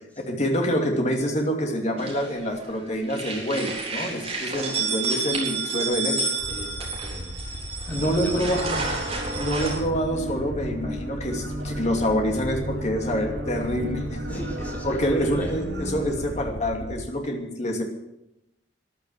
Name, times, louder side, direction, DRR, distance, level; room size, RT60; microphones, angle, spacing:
voice 1, 0.3-6.3 7.9-8.8 9.3-14.4 14.8-17.8, equal, 40° left, 2 dB, 2.7 m, -26 dB
sound 1, 2.0-2.7 3.0-9.8, right 4 dB, 35° right, 3.8 m, -30 dB
Aircraft, 6.4-17.0, equal, 75° left, 2.4 m, -37 dB
voice 2, 6.5-9.0 14.3-15.5, equal, 10° left, -2 dB, 4.0 m, -39 dB
sound 2, 8.0-16.4, equal, 75° right, 4.7 m, -35 dB
14.5 x 11.5 x 7.6 m, 0.87 s
head